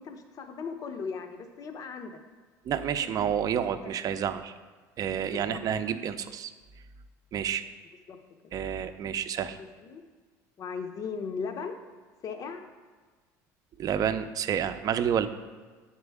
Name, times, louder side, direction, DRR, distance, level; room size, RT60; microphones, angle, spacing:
voice 1, 0.0-2.2 3.0-3.7 5.3-5.6 8.1-8.2 9.6-10.0 10.6-11.8 12.2-12.6, left 5 dB, 45° left, 7 dB, 0.8 m, -38 dB
voice 2, 2.6-4.5 5.0-6.5 7.3-7.7 8.5-9.6 13.8-15.3, right 8 dB, 45° right, 10 dB, 0.5 m, -29 dB
9.4 x 4.5 x 3.4 m, 1.4 s
supercardioid pair, 85°, 8 cm